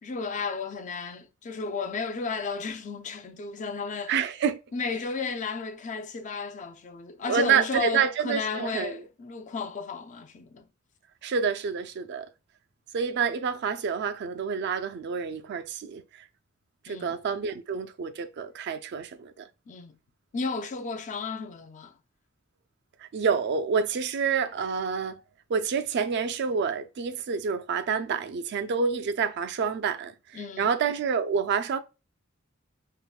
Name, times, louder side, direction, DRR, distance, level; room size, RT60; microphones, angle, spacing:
voice 1, 0.0-4.1 4.7-10.7 16.9-17.1 19.7-19.9 20.3-21.9 30.3-30.7, left 4 dB, 35° left, 0.4 m, -33 dB
voice 2, 4.1-4.6 7.3-9.0 11.2-12.3 12.9-16.0 16.8-19.5 23.1-25.2 25.5-31.8, right 6 dB, 55° right, 0.3 m, -28 dB
3.6 x 2.1 x 2.3 m
head